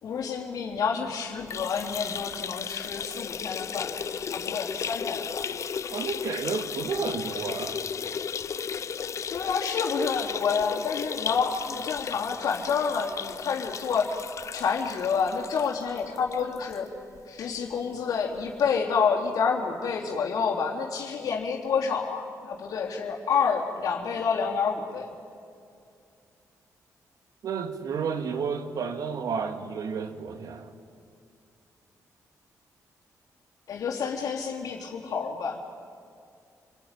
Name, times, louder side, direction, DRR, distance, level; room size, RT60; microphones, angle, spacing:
voice 1, 0.0-3.9 4.3-5.5 9.3-14.1 14.5-16.9 17.3-25.1 33.7-35.6, left 6 dB, 75° left, 0 dB, 3.5 m, -28 dB
sound 1, 1.4-16.8 17.2-17.3 17.6-17.7 18.7-18.8, left 7 dB, 50° left, 0.7 m, -35 dB
voice 2, 5.9-7.9 27.4-30.7, right 6 dB, 70° right, 8 dB, 2.1 m, -31 dB
28.0 x 21.0 x 10.0 m, 2.4 s
cardioid pair, 105°, 6 cm